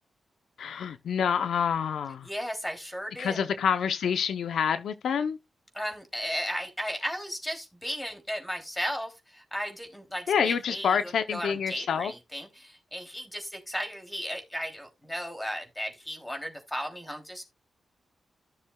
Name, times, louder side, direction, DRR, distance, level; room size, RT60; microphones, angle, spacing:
voice 1, 0.6-2.3 3.2-5.4 10.3-12.1, left 7 dB, 85° left, 0.6 m, -27 dB
voice 2, 2.2-3.5 5.7-17.4, equal, 10° left, 2.9 m, -35 dB
14.0 x 6.7 x 2.3 m
cardioid pair, 90°, 0 cm